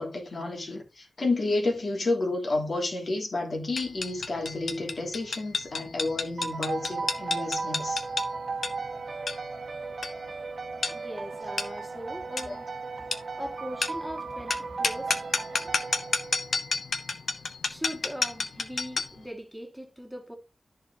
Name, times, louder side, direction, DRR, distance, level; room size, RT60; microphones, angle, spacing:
voice 1, 0.0-8.0 12.5-12.6, left 2 dB, 70° left, 3.1 m, -30 dB
sound 1, 3.8-19.2, left 4 dB, 90° left, 1.2 m, -32 dB
sound 2, 6.4-16.8, right 4 dB, 80° right, 1.0 m, -36 dB
voice 2, 10.9-12.7 13.4-15.2 15.6-15.7 17.6-20.4, equal, 5° right, 1.9 m, -40 dB
14.0 x 4.8 x 2.8 m
wide cardioid pair, 85°, 0 cm